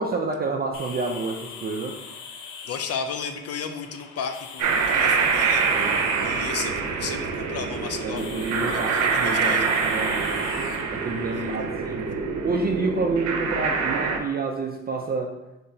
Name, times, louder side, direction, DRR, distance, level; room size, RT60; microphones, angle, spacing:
voice 1, 0.0-2.0 5.7-6.3 8.0-10.7 10.9-12.1 12.4-15.3, right 3 dB, 30° right, 2 dB, 0.5 m, -29 dB
sound 1, 0.7-11.6, left 5 dB, 90° left, 0.7 m, -41 dB
voice 2, 2.6-5.7 6.2-8.4 8.7-9.7 11.3-11.5, left 6 dB, 55° left, 7 dB, 0.5 m, -33 dB
sound 2, 4.6-14.2, right 5 dB, 65° right, 0.8 m, -25 dB
6.7 x 2.9 x 2.7 m, 0.98 s
cardioid pair, 90°, 30 cm